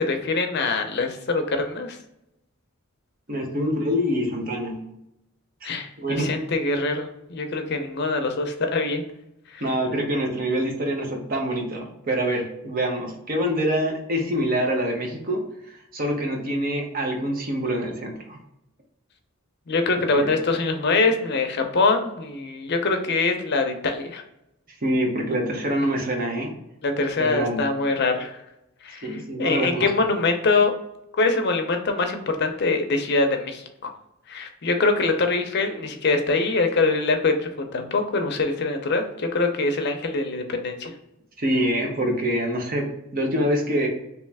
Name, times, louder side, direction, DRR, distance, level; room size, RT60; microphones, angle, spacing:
voice 1, 0.0-2.0 5.6-9.0 9.5-9.7 19.7-24.2 26.8-28.4 28.8-30.7 31.2-33.9 34.3-40.9, left 3 dB, 50° left, 5 dB, 0.5 m, -24 dB
voice 2, 3.3-4.8 5.6-5.7 6.0-6.3 9.6-18.4 20.1-20.4 24.8-26.5 27.2-27.7 29.0-29.9 41.4-43.9, equal, 45° right, 2 dB, 0.8 m, -25 dB
3.1 x 3.0 x 3.3 m, 0.84 s
head